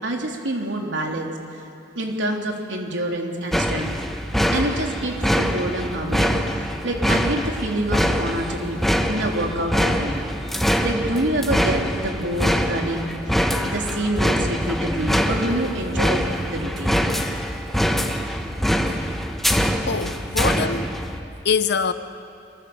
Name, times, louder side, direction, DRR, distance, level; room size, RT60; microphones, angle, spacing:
voice 1, 0.0-1.6 1.9-4.0 4.5-8.8 9.1-13.1 13.6-17.1, right 1 dB, 80° right, 3.5 m, -27 dB
sound 1, 3.5-21.2, equal, ahead, 1.4 m, -24 dB
voice 2, 19.6-20.9 21.4-21.9, left 5 dB, 65° left, 0.8 m, -24 dB
26.5 x 24.5 x 7.2 m
head